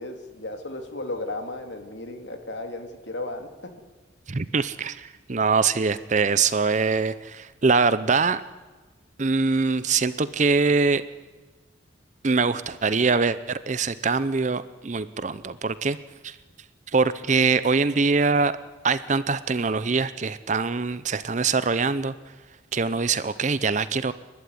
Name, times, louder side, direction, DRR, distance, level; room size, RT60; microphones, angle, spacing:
voice 1, 0.0-3.7, left 2 dB, 70° left, 5 dB, 2.8 m, -35 dB
voice 2, 4.3-8.4 9.2-11.0 12.2-16.0 16.2-16.4 16.9-18.5 18.8-22.1 22.7-24.1, right 4 dB, 40° right, 14 dB, 0.6 m, -23 dB
29.0 x 12.0 x 9.6 m, 1.3 s
head